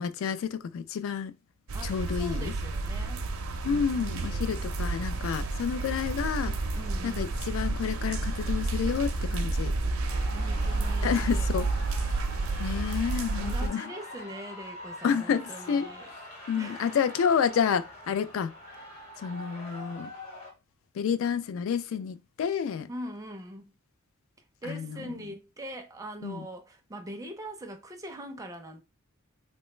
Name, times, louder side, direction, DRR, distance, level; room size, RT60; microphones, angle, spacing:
voice 1, 0.0-1.3 1.8-2.5 3.6-6.5 7.0-9.7 11.0-11.7 12.6-13.8 15.0-15.9 16.5-18.5 19.2-20.1 21.0-22.9 24.6-25.0 26.2-26.4, left 7 dB, 65° left, 0.3 m, -29 dB
voice 2, 1.7-3.2 3.6-4.6 6.7-7.3 10.3-11.5 13.4-16.1 16.6-16.9 22.9-23.7 24.6-28.8, right 1 dB, 15° right, 0.4 m, -42 dB
sound 1, 1.7-13.7, right 3 dB, 70° right, 0.5 m, -30 dB
sound 2, 10.0-20.5, left 1 dB, 30° left, 0.9 m, -44 dB
3.1 x 2.1 x 3.0 m
head